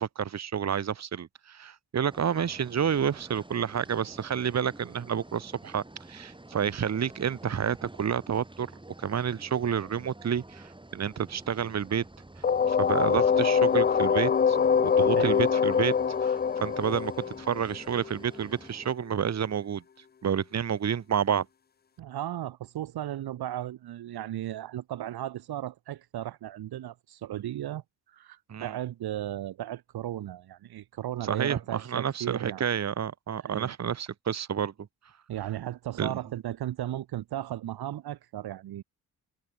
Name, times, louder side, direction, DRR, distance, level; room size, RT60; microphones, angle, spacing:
voice 1, 0.0-8.7 9.0-12.0 12.7-15.9 16.2-17.1 17.4-19.8 20.2-21.4 28.5-28.7 31.3-34.7 36.0-36.2, right 8 dB, 45° right, 1.4 m, -29 dB
sound 1, 2.1-18.9, right 2 dB, 10° right, 6.1 m, -49 dB
sound 2, 12.4-18.2, left 6 dB, 25° left, 0.5 m, -24 dB
voice 2, 15.0-15.4 22.0-32.6 33.4-33.7 35.3-38.8, right 12 dB, 70° right, 1.4 m, -35 dB
cardioid pair, 85°, 38 cm